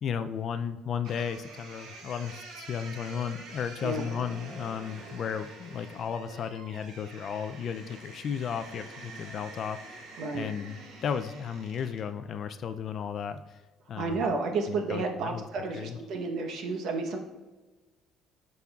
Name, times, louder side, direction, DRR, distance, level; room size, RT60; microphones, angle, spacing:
voice 1, 0.0-10.1 10.3-13.6 13.9-14.3 14.7-15.4 15.7-16.0, left 7 dB, 40° left, 10 dB, 0.4 m, -34 dB
sound 1, 1.0-12.1, right 2 dB, 80° right, 1.8 m, -47 dB
voice 2, 10.2-10.5 14.0-17.2, right 4 dB, 50° right, 3 dB, 1.0 m, -31 dB
12.5 x 5.4 x 2.4 m, 1.2 s
cardioid pair, 165°, 0 cm